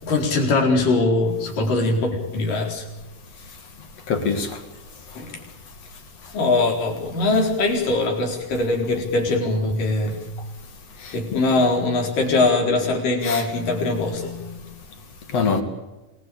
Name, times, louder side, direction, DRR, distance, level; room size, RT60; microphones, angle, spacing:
voice 1, 0.0-2.9 5.2-5.4 6.3-10.2 11.1-14.3, left 2 dB, 90° left, 5.9 m, -21 dB
voice 2, 4.1-4.6 11.0-11.4 13.2-14.6 15.3-15.6, left 5 dB, 55° left, 3.3 m, -26 dB
27.0 x 20.0 x 8.5 m
omnidirectional pair, 3.7 m